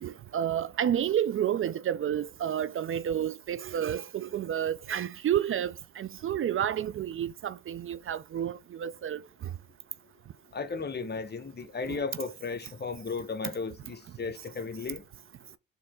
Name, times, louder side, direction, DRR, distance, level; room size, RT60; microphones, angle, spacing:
voice 1, 0.0-9.5 11.9-12.0, right 10 dB, 40° right, 0.4 m, -30 dB
voice 2, 10.5-15.0, left 4 dB, 30° left, 1.0 m, -35 dB
4.4 x 3.0 x 3.7 m
supercardioid pair, 70°, 33 cm